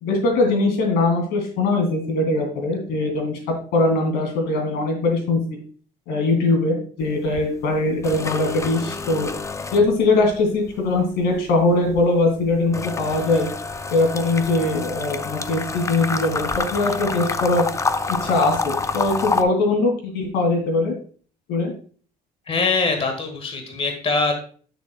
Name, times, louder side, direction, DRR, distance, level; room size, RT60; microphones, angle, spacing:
voice 1, 0.0-3.4 3.7-5.6 6.1-9.3 9.7-13.5 13.9-17.7 18.1-20.9 21.5-21.7, left 2 dB, 90° left, 3 dB, 2.6 m, -21 dB
sound 1, 7.0-7.4 7.7-10.4 10.7-19.4, left 4 dB, 15° left, 0.5 m, -28 dB
voice 2, 22.5-24.3, left 4 dB, 35° left, 4 dB, 1.6 m, -22 dB
9.5 x 7.0 x 2.3 m, 0.43 s
cardioid pair, 110°, 17 cm